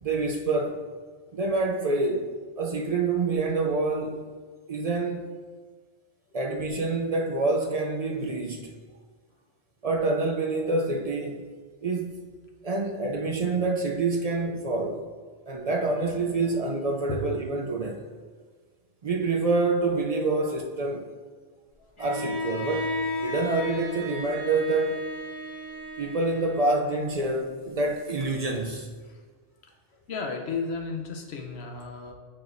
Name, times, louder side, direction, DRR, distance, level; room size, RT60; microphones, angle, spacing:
voice 1, 0.0-0.9 1.3-4.2 4.7-5.3 6.3-8.7 9.8-11.4 11.8-12.3 12.6-15.1 15.5-18.0 19.0-21.1 22.0-25.0 26.0-28.9, right 3 dB, 60° right, 1 dB, 0.4 m, -27 dB
Bowed string instrument, 22.0-27.0, left 1 dB, 25° left, 1.4 m, -33 dB
voice 2, 29.6-32.1, left 4 dB, 65° left, 3 dB, 0.9 m, -34 dB
8.7 x 4.3 x 2.5 m, 1.5 s
omnidirectional pair, 1.2 m